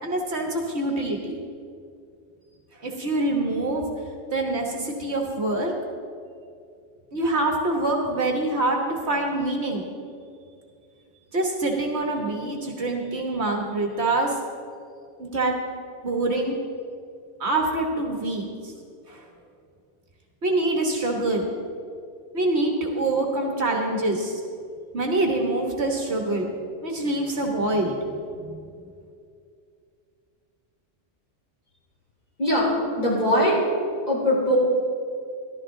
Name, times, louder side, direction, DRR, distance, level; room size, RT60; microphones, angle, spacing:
voice 1, 0.0-1.4 2.8-3.8 4.3-5.7 7.1-8.8 9.1-9.8 11.3-14.3 15.2-15.6 16.0-16.6 17.4-18.4 19.1-19.2 20.4-21.5 22.3-24.4 24.9-26.5 26.8-27.9 28.4-28.6, right 2 dB, 60° right, 1 dB, 1.5 m, -25 dB
voice 2, 32.4-33.6 34.1-34.6, equal, 35° left, -5 dB, 3.9 m, -21 dB
14.0 x 12.5 x 3.8 m, 2.4 s
omnidirectional pair, 1.3 m